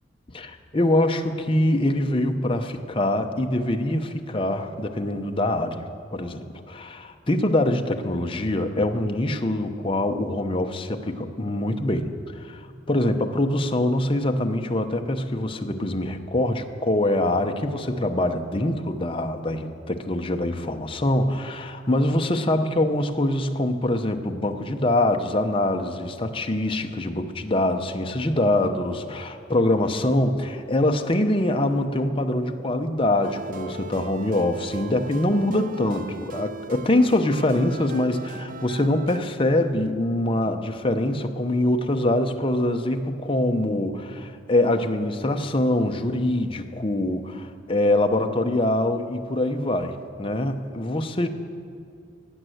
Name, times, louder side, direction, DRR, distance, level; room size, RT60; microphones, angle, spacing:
voice 1, 0.3-5.9 6.1-12.1 12.4-12.6 12.9-51.3, left 1 dB, 30° left, 5 dB, 0.8 m, -24 dB
sound 1, 33.2-39.2, right 4 dB, 45° right, 0.4 m, -39 dB
16.0 x 9.1 x 7.8 m, 2.4 s
head